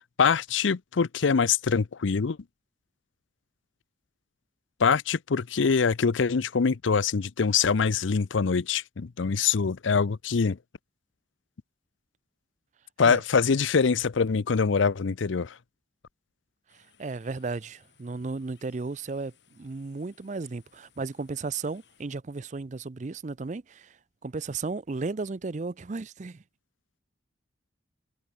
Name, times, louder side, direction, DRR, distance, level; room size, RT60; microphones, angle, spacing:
voice 1, 0.0-2.4 4.8-10.6 13.0-15.6, left 5 dB, 85° left, 0.6 m, -24 dB
sound 1, 16.7-22.0, left 7 dB, 65° left, 7.3 m, -64 dB
voice 2, 16.7-24.0 24.2-26.4, right 3 dB, 40° right, 0.5 m, -34 dB
head